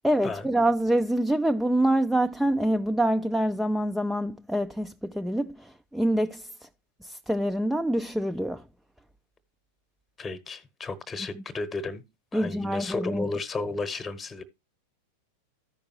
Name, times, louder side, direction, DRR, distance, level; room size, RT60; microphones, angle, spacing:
voice 1, 0.0-6.7 7.0-8.6 12.3-13.3, right 1 dB, ahead, 0.4 m, -26 dB
voice 2, 10.2-12.0 12.3-14.4, left 3 dB, 15° left, 1.0 m, -33 dB
14.0 x 5.2 x 2.9 m
figure-of-eight pair, 90°, 0 cm